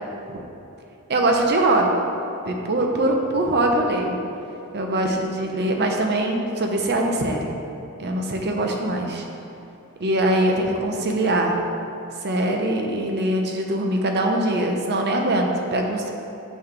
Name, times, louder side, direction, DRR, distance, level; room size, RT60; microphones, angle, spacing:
voice 1, 1.1-1.9 2.5-4.2 4.7-7.5 8.0-9.2 10.0-11.6 12.2-16.1, right 1 dB, 50° right, 2 dB, 0.7 m, -22 dB
6.4 x 5.8 x 3.3 m, 2.9 s
head